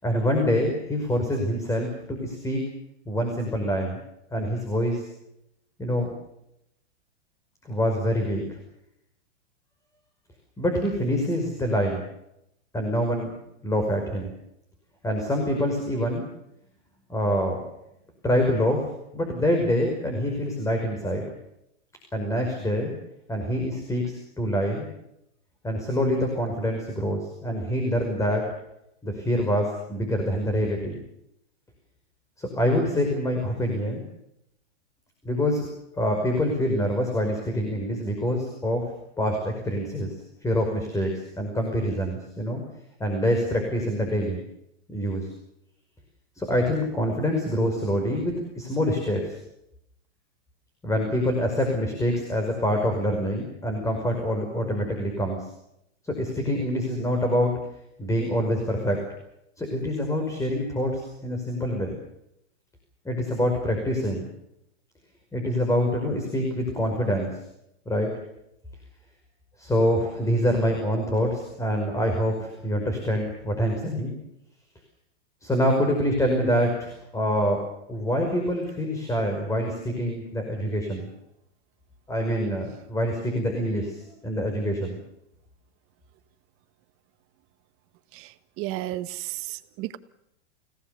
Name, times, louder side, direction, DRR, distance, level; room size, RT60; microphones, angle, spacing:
voice 1, 0.0-2.6 3.1-4.0 4.3-5.0 5.8-6.1 7.6-8.6 10.6-12.0 12.7-13.3 13.6-14.3 15.0-16.2 17.1-17.6 18.2-21.3 22.1-22.9 23.3-24.9 25.6-28.5 29.0-31.0 32.4-34.0 35.2-35.7 35.9-38.9 39.2-40.1 40.4-42.6 43.0-44.4 44.9-45.3 46.4-49.3 50.8-55.5 56.0-57.6 58.0-59.0 59.6-62.0 63.1-64.2 65.3-67.4 67.9-68.1 69.6-74.1 75.4-77.6 77.9-81.1 82.1-85.0, equal, 10° left, 3 dB, 5.4 m, -25 dB
voice 2, 88.6-90.0, right 16 dB, 40° right, 11 dB, 1.6 m, -33 dB
29.5 x 18.0 x 6.9 m, 0.80 s
hypercardioid pair, 130°, 35 cm